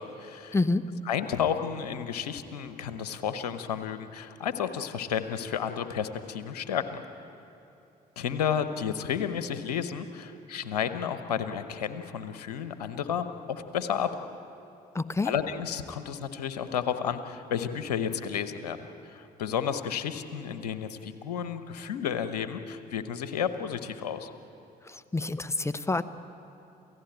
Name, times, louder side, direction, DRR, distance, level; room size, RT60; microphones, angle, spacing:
voice 1, 0.0-0.6 1.1-6.8 8.2-14.1 15.2-18.8 19.0-24.3, left 8 dB, 85° left, 10 dB, 0.9 m, -32 dB
voice 2, 0.5-0.9 14.9-15.3 24.8-26.0, left 3 dB, 15° left, 14 dB, 1.0 m, -28 dB
28.0 x 16.0 x 8.9 m, 2.8 s
hypercardioid pair, 50°, 20 cm